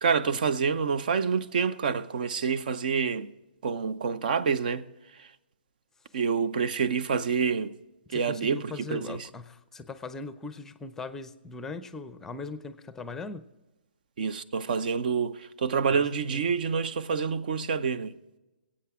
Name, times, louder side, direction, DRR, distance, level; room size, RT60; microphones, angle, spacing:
voice 1, 0.0-3.3 3.6-4.9 5.1-5.3 6.1-7.8 8.1-9.3 14.2-18.1, right 6 dB, 55° right, 0.8 m, -27 dB
voice 2, 8.1-13.5 15.9-16.5, left 3 dB, 10° left, 0.6 m, -40 dB
22.5 x 8.6 x 3.6 m
hypercardioid pair, 140°, 6 cm